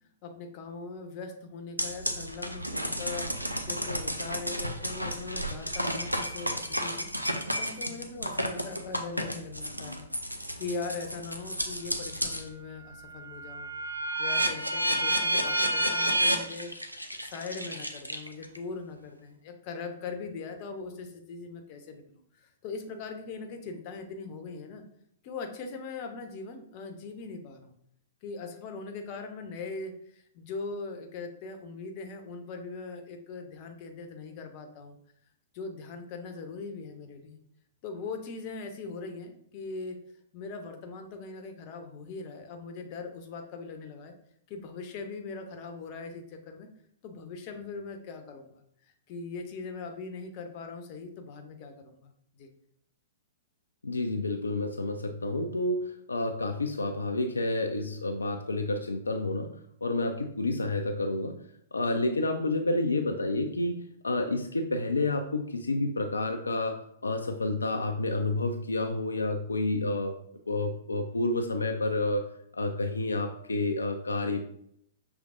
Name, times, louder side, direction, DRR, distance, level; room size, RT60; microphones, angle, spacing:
voice 1, 0.0-7.1 7.6-10.1 10.6-13.7 14.2-16.7 17.2-24.8 25.2-27.7 28.2-35.0 35.5-37.4 37.8-40.0 40.3-44.1 44.5-46.7 47.0-52.1 52.4-52.5, left 4 dB, 35° left, 5 dB, 0.7 m, -40 dB
sound 1, 1.8-12.5 12.9-18.6, right 1 dB, 90° right, 0.5 m, -31 dB
voice 2, 53.8-59.5 59.8-61.4 61.7-63.8 64.0-70.1 70.5-72.2 72.5-74.4, left 2 dB, 75° left, 4 dB, 0.4 m, -29 dB
6.0 x 3.2 x 2.5 m, 0.72 s
figure-of-eight pair, 110°, 0 cm